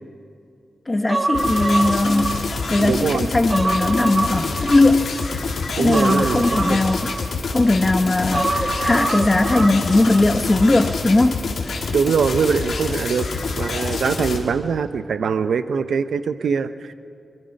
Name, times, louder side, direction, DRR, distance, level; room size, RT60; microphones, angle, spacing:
voice 1, 0.9-5.2 5.8-7.2 7.4-11.8, left 2 dB, 25° left, 9 dB, 0.9 m, -19 dB
Human voice, 1.1-2.9 3.3-5.3 5.9-7.7 8.3-10.3 10.5-10.7, right 2 dB, 35° right, 1.4 m, -25 dB
sound 1, 1.3-14.4, left 4 dB, 85° left, 2.7 m, -27 dB
voice 2, 2.8-3.3 5.7-6.8 11.9-16.9, right 6 dB, 85° right, 11 dB, 0.8 m, -22 dB
25.0 x 23.5 x 5.4 m, 2.4 s
wide cardioid pair, 105°, 0 cm